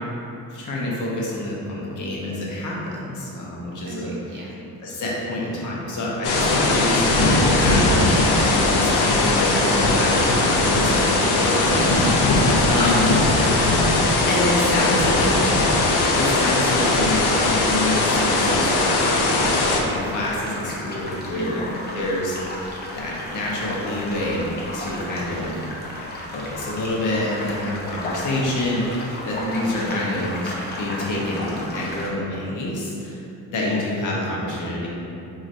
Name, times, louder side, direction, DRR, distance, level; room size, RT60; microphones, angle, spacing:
voice 1, 0.5-4.1 4.8-12.0 12.7-13.2 14.3-15.5 16.1-18.9 19.8-21.6 21.9-22.4 23.0-25.6 26.3-33.2 33.5-34.9, left 1 dB, 55° left, -4 dB, 0.7 m, -27 dB
voice 2, 3.8-4.5 11.4-13.4 21.3-22.0 29.4-30.1 33.6-33.8, right 2 dB, 30° right, -6 dB, 0.6 m, -32 dB
sound 1, 6.2-19.8, left 2 dB, 85° left, 0.5 m, -19 dB
sound 2, 14.5-32.1, left 1 dB, 30° left, 0.4 m, -34 dB
2.5 x 2.4 x 4.1 m, 2.9 s
cardioid pair, 155°, 37 cm